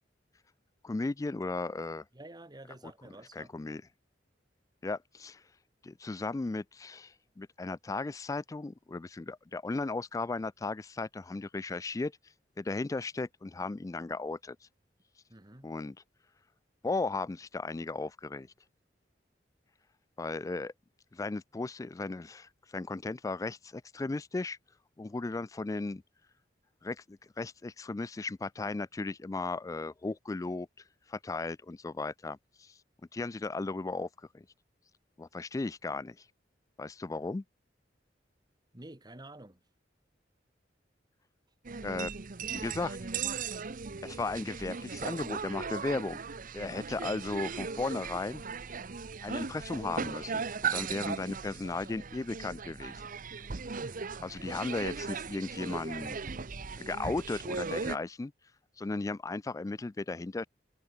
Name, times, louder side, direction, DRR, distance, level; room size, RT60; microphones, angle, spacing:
voice 1, 0.8-2.0 3.4-3.8 4.8-5.4 5.8-12.1 12.6-14.6 15.6-16.0 16.8-18.5 20.2-20.7 21.1-24.6 25.0-26.0 26.8-30.7 31.1-32.7 33.1-34.1 34.3-34.5 35.2-36.2 36.8-37.4 41.8-42.1 42.5-43.0 44.0-46.2 46.5-48.4 49.2-52.9 54.2-56.2 56.8-58.3 58.8-60.5, left 3 dB, 20° left, 0.3 m, -36 dB
voice 2, 2.1-3.5 15.3-15.7 38.7-39.6 54.4-54.6, right 1 dB, 25° right, 2.0 m, -49 dB
sound 1, 41.6-58.0, right 5 dB, 50° right, 0.9 m, -38 dB
head